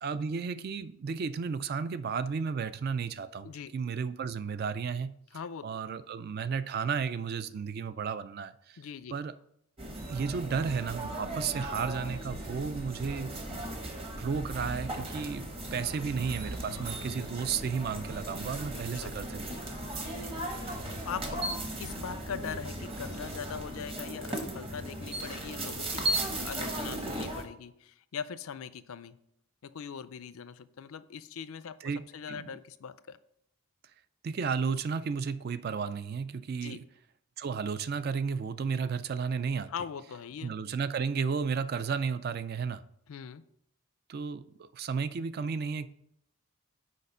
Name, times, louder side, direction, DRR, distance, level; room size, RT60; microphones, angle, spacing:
voice 1, 0.0-5.1 5.6-8.8 9.1-9.3 10.1-13.6 14.1-19.5 31.8-32.4 34.2-36.8 37.4-39.7 40.4-42.8 44.1-45.9, right 5 dB, 45° right, 0.3 m, -33 dB
voice 2, 5.3-5.7 8.8-9.2 16.7-16.8 18.7-19.1 20.2-26.1 26.4-29.2 29.6-33.2 36.6-36.8 39.7-40.6 43.1-43.4, left 7 dB, 70° left, 0.4 m, -41 dB
sound 1, 9.8-27.4, right 1 dB, 25° right, 0.9 m, -37 dB
6.6 x 5.0 x 5.4 m
head